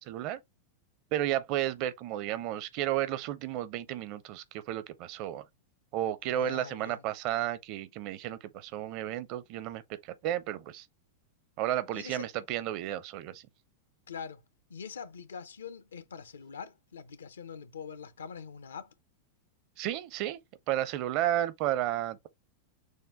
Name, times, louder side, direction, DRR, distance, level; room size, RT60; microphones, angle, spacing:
voice 1, 0.1-0.4 1.1-5.4 5.9-10.9 11.6-13.4 19.8-20.4 20.7-22.3, right 12 dB, 45° right, 0.6 m, -32 dB
voice 2, 6.3-7.0 11.9-12.3 14.1-14.4 14.7-18.9, left 6 dB, 70° left, 0.6 m, -44 dB
6.4 x 2.2 x 3.4 m
figure-of-eight pair, 90°, 0 cm